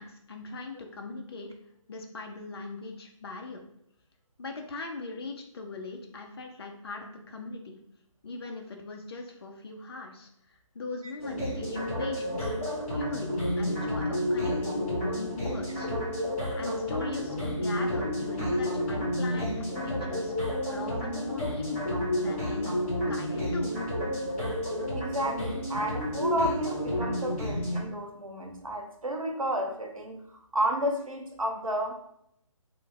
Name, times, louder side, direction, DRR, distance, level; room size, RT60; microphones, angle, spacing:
voice 1, 0.0-1.5 1.9-3.6 4.4-7.8 8.2-12.5 12.9-15.9 16.5-23.8, left 3 dB, 50° left, 3 dB, 0.4 m, -40 dB
sound 1, 11.2-27.8, left 1 dB, 25° left, 1.0 m, -30 dB
voice 2, 25.0-31.9, right 1 dB, 90° right, 3 dB, 0.7 m, -31 dB
3.1 x 2.1 x 3.3 m, 0.74 s
figure-of-eight pair, 150°, 17 cm